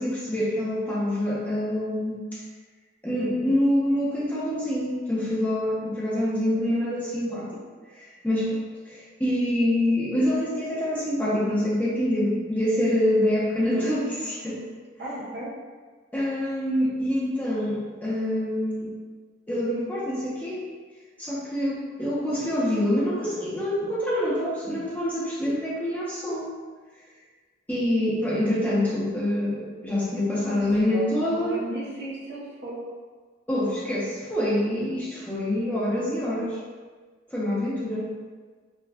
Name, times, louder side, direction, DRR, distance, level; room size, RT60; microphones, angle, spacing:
voice 1, 0.0-2.4 3.0-7.5 7.9-8.6 8.9-14.6 16.1-18.9 19.5-20.7 21.2-26.5 27.7-31.6 33.5-36.6 37.3-38.1, left 1 dB, 10° left, -8 dB, 0.8 m, -26 dB
voice 2, 15.0-15.5 30.4-32.8, right 1 dB, 60° right, -6 dB, 0.9 m, -35 dB
5.4 x 2.3 x 2.3 m, 1.4 s
head